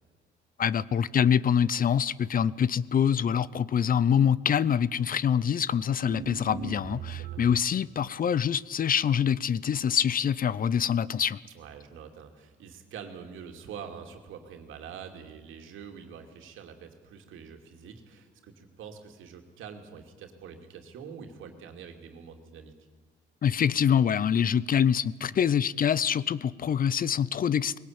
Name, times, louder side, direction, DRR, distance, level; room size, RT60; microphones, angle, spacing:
voice 1, 0.6-11.4 23.4-27.8, left 8 dB, 45° left, 0.6 m, -25 dB
Electronic Explosion, 6.0-7.8, right 12 dB, 55° right, 0.7 m, -39 dB
voice 2, 7.1-7.4 11.5-22.7, right 7 dB, 85° right, 2.7 m, -45 dB
20.5 x 17.5 x 8.8 m
cardioid pair, 90°, 20 cm